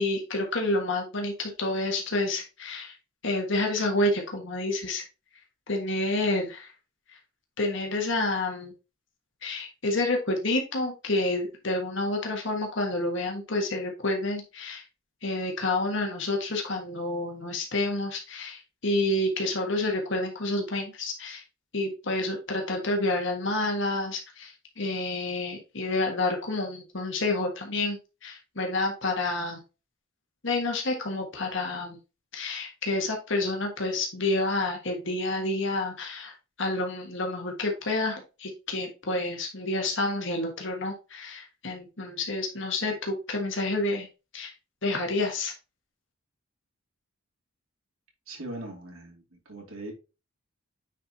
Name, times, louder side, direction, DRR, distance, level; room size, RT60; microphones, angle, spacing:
voice 1, 0.0-2.9 3.2-5.0 5.7-6.7 7.6-8.7 9.4-14.8 15.2-21.4 21.7-29.6 30.4-32.0 32.3-44.1 44.3-44.5 44.8-45.5, left 2 dB, 60° left, 1.6 m, -29 dB
voice 2, 48.3-49.9, right 1 dB, 85° right, 2.9 m, -40 dB
9.1 x 4.3 x 2.9 m
head